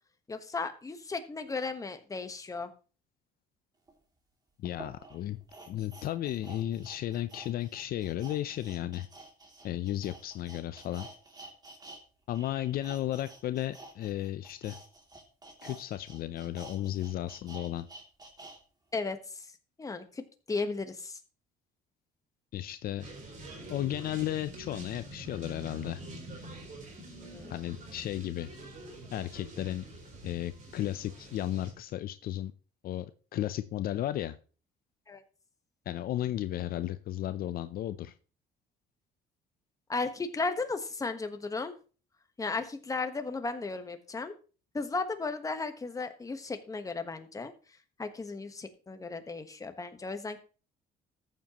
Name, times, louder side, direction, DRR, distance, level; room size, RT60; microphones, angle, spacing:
voice 1, 0.3-2.7 18.9-19.4 19.8-21.2 27.1-27.6 35.1-35.2 39.9-41.7 42.4-44.3 44.7-47.5 48.0-50.4, left 3 dB, 20° left, 8 dB, 1.2 m, -35 dB
sound 1, 3.9-4.0 4.6-12.0 12.3-18.6 19.0-19.1, right 2 dB, 25° right, 2.8 m, -50 dB
voice 2, 4.6-5.4 5.7-9.1 9.6-11.1 12.3-14.8 15.6-17.9 22.5-23.0 23.7-26.0 27.5-28.5 29.1-29.8 30.2-32.5 32.8-33.1 33.3-34.4 35.9-38.1, left 13 dB, 60° left, 12 dB, 0.6 m, -34 dB
sound 2, 23.0-31.7, right 1 dB, 45° right, 4.0 m, -46 dB
14.0 x 7.4 x 3.0 m, 0.36 s
cardioid pair, 110°, 17 cm